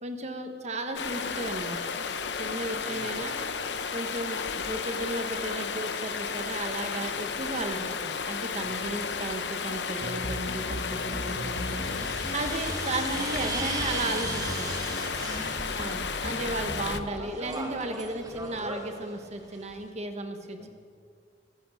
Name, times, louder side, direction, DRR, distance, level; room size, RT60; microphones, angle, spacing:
voice 1, 0.0-1.9 2.4-3.4 3.9-11.8 12.3-14.7 15.7-20.7, right 2 dB, 40° right, 6 dB, 1.4 m, -35 dB
Stream, 0.9-17.0, left 5 dB, 70° left, 0.9 m, -33 dB
voice 2, 2.7-3.3 8.6-9.1 11.1-12.4 15.1-15.6 20.6-20.7, left 1 dB, 45° left, 5 dB, 1.5 m, -49 dB
sound 1, 8.9-9.0 10.3-16.3 16.7-19.9, right 3 dB, 20° right, 1.7 m, -39 dB
sound 2, 10.0-17.0, equal, 15° left, 1.5 m, -38 dB
23.0 x 9.1 x 6.5 m, 2.2 s
head